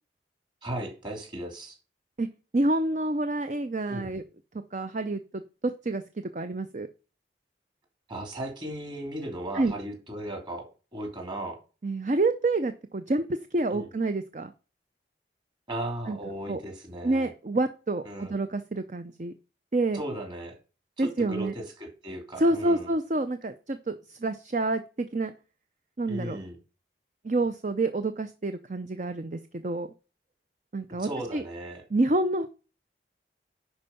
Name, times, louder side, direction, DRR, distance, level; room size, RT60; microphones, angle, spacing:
voice 1, 0.6-1.8 3.9-4.1 8.1-10.7 10.9-11.6 13.7-13.9 15.7-17.3 18.0-18.3 19.9-20.6 21.0-22.9 26.1-26.6 31.0-31.8, right 1 dB, 25° right, 2 dB, 2.9 m, -36 dB
voice 2, 2.5-4.2 4.7-6.9 9.5-9.7 11.8-14.5 16.1-16.2 16.5-16.6 17.0-19.3 19.7-20.0 21.0-21.5 22.4-25.3 26.0-26.4 27.2-29.9 30.7-31.4 31.9-32.5, right 2 dB, 45° right, 10 dB, 0.6 m, -28 dB
10.5 x 4.6 x 5.7 m, 0.34 s
head